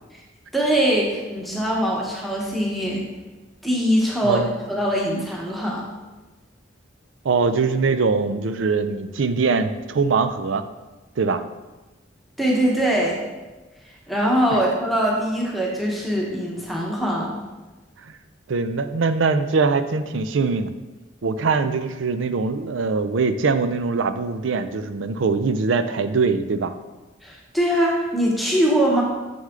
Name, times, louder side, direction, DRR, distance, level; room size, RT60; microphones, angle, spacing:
voice 1, 0.5-3.0 3.6-4.4 4.7-5.9 12.4-13.2 14.1-17.4 27.2-29.0, equal, ahead, -3 dB, 1.1 m, -22 dB
voice 2, 7.2-10.6 11.2-11.4 18.5-20.7 21.2-26.7, right 4 dB, 90° right, 11 dB, 0.5 m, -22 dB
7.0 x 6.4 x 3.7 m, 1.2 s
head